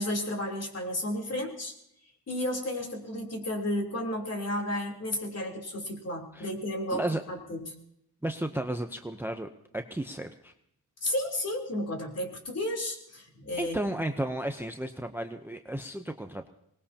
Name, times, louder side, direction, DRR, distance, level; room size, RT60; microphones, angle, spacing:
voice 1, 0.0-1.8 2.3-7.7 11.0-13.8, left 1 dB, 40° left, 1 dB, 3.5 m, -32 dB
voice 2, 6.9-7.2 8.2-9.5 9.7-10.5 13.6-16.5, right 1 dB, 5° right, 6 dB, 0.7 m, -33 dB
25.0 x 20.0 x 2.9 m, 0.76 s
wide cardioid pair, 110°, 39 cm